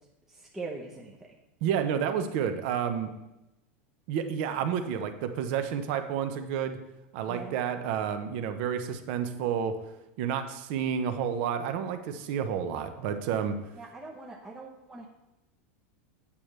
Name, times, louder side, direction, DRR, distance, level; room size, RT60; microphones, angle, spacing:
voice 1, 0.3-1.2 7.3-7.7 13.8-15.1, right 3 dB, 5° right, -2 dB, 0.8 m, -42 dB
voice 2, 1.6-3.1 4.1-6.8 7.1-9.8 10.2-13.6, right 8 dB, 50° right, 8 dB, 0.9 m, -30 dB
8.8 x 8.6 x 3.3 m, 0.95 s
supercardioid pair, 160°, 7 cm